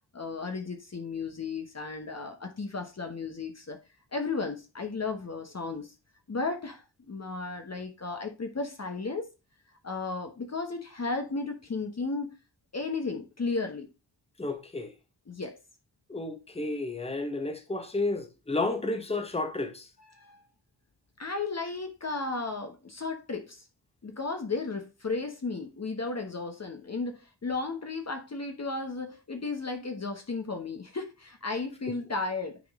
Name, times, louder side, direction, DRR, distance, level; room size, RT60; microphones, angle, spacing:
voice 1, 0.1-3.8 4.1-5.9 6.3-9.3 9.8-12.3 12.7-13.9 15.3-15.6 20.0-20.4 21.2-23.7 24.0-32.6, left 3 dB, 35° left, 1.1 m, -34 dB
voice 2, 14.4-14.9 16.1-19.9, left 2 dB, 15° left, 1.2 m, -31 dB
9.4 x 3.6 x 3.6 m
wide cardioid pair, 90°, 45 cm